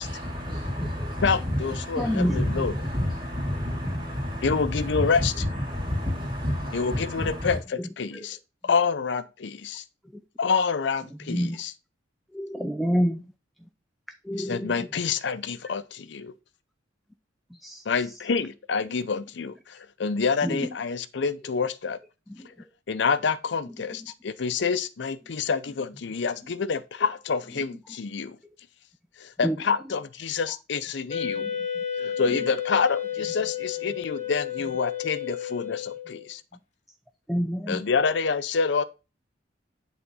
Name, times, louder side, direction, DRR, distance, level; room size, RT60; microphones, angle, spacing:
voice 1, 0.0-7.6, equal, 25° right, 2.6 m, -30 dB
voice 2, 1.2-2.8 4.4-5.3 6.7-8.4 8.6-9.8 10.4-11.7 14.4-16.3 17.9-22.0 22.9-28.4 29.2-31.4 32.0-36.4 37.7-38.8, left 5 dB, 65° left, 0.5 m, -27 dB
voice 3, 2.0-2.6 3.8-3.9 8.1-8.3 11.3-11.6 12.3-13.2 14.3-14.9 17.6-17.8 20.4-20.7 29.4-29.6 31.4-31.5 32.3-32.4 37.3-37.8, equal, ahead, 0.4 m, -27 dB
Wind instrument woodwind instrument, 31.1-36.3, left 9 dB, 35° left, 1.3 m, -32 dB
8.2 x 3.8 x 5.3 m
head